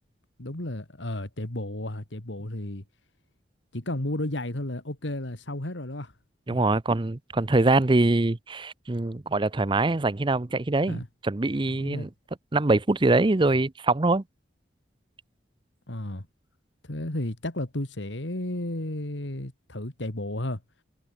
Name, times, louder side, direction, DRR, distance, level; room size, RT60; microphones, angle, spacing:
voice 1, 0.4-2.8 3.7-6.1 6.5-6.6 10.9-11.1 11.8-12.1 15.9-16.3 16.9-20.6, left 1 dB, 75° left, 2.6 m, -33 dB
voice 2, 6.5-12.1 12.5-14.2, right 2 dB, 25° right, 0.6 m, -23 dB
head